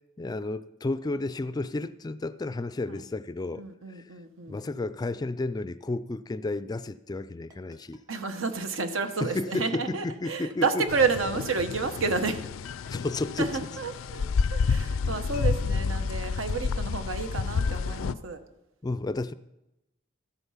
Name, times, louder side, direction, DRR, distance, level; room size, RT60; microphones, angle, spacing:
voice 1, 0.2-4.1 4.5-8.0 9.2-10.8 12.9-13.5 18.8-19.3, left 2 dB, 20° left, 0.3 m, -32 dB
voice 2, 3.6-4.6 8.1-12.4 13.4-18.4, right 4 dB, 80° right, 1.1 m, -30 dB
Ringtone, 7.5-14.2, right 1 dB, 20° right, 1.3 m, -54 dB
sound 1, 10.9-18.1, left 5 dB, 90° left, 0.4 m, -29 dB
14.0 x 8.0 x 5.7 m
head